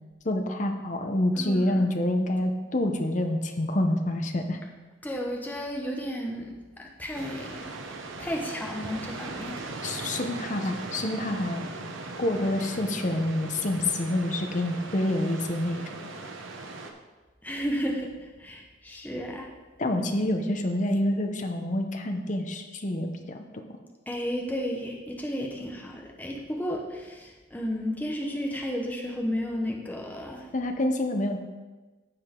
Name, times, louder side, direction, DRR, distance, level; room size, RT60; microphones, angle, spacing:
voice 1, 0.2-4.6 9.8-11.7 12.2-15.9 19.8-23.4 30.5-31.4, left 1 dB, 40° left, 4 dB, 0.8 m, -27 dB
voice 2, 1.4-1.8 5.0-7.7 8.2-9.6 9.9-10.2 17.4-18.1 18.4-19.5 24.1-30.5, equal, 10° left, 0 dB, 0.9 m, -33 dB
sound 1, 7.1-16.9, right 3 dB, 90° right, 1.0 m, -39 dB
15.0 x 5.0 x 3.7 m, 1.2 s
head